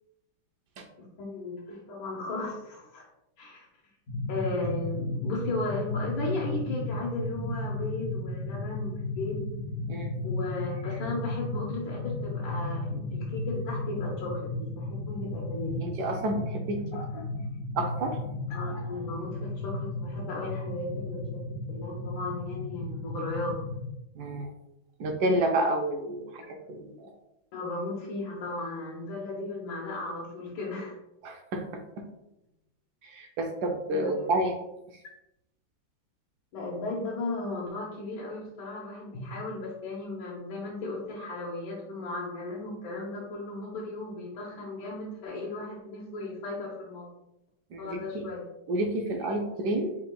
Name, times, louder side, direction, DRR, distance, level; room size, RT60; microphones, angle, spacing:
voice 1, 1.0-3.1 3.4-3.7 4.3-9.4 10.2-15.8 16.9-17.2 18.5-23.6 27.5-30.9 33.9-34.1 36.5-47.1 47.8-48.4, left 2 dB, 75° left, -3 dB, 1.6 m, -36 dB
sound 1, 4.1-23.9, left 2 dB, 55° left, 1.3 m, -34 dB
voice 2, 15.8-17.3 17.7-18.2 24.1-24.5 25.0-27.1 31.2-32.1 33.0-34.6 34.9-35.0 47.7-48.3 48.7-50.0, right 1 dB, 75° right, 3 dB, 0.9 m, -30 dB
5.0 x 4.4 x 2.2 m, 0.90 s
omnidirectional pair, 2.2 m